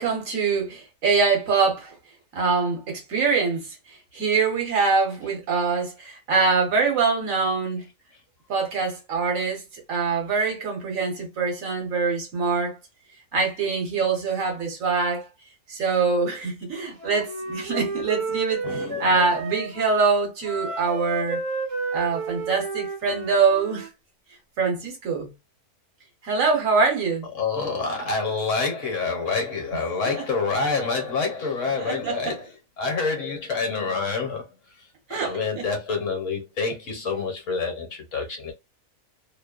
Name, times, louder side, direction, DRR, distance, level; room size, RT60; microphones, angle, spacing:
voice 1, 0.0-1.9 2.3-3.6 4.1-7.8 8.5-9.6 9.9-12.8 13.3-15.3 15.7-21.4 21.9-23.9 24.6-25.3 26.2-27.3 30.1-30.2 31.8-32.4 35.1-35.7, right 4 dB, 60° right, 1.3 m, -24 dB
Wind instrument woodwind instrument, 17.0-20.0 20.4-23.9, right 3 dB, 30° right, 0.7 m, -31 dB
voice 2, 18.6-19.1 27.4-34.4 35.1-38.5, left 4 dB, 60° left, 1.1 m, -27 dB
2.9 x 2.1 x 2.3 m
omnidirectional pair, 1.6 m